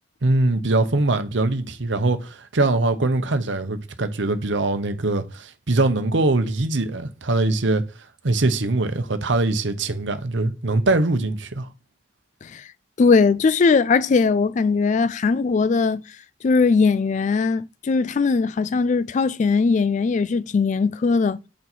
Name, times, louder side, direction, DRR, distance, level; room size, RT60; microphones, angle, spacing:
voice 1, 0.2-7.8 8.2-11.7, right 2 dB, 75° right, 0.9 m, -22 dB
voice 2, 13.0-16.0 16.4-21.4, left 4 dB, 40° left, 0.3 m, -19 dB
6.3 x 4.5 x 4.1 m
head